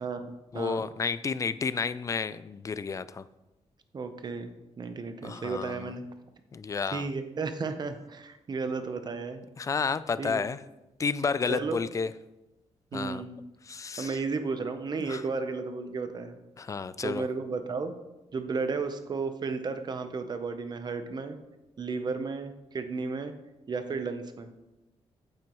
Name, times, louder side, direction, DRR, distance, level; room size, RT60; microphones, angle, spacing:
voice 1, 0.0-0.8 3.9-6.0 6.9-9.4 10.2-10.5 11.5-11.8 12.9-13.4 14.0-16.4 16.7-16.8 17.0-17.9 18.3-21.4 21.8-23.3 23.7-24.5, right 4 dB, 40° right, 8 dB, 0.7 m, -33 dB
voice 2, 0.5-3.2 5.2-5.9 6.5-7.1 9.6-10.6 11.0-12.1 12.9-13.2 13.7-14.2 15.1-15.2 16.6-17.3, left 5 dB, 30° left, 15 dB, 0.3 m, -31 dB
9.0 x 7.8 x 3.0 m, 0.98 s
wide cardioid pair, 130°, 12 cm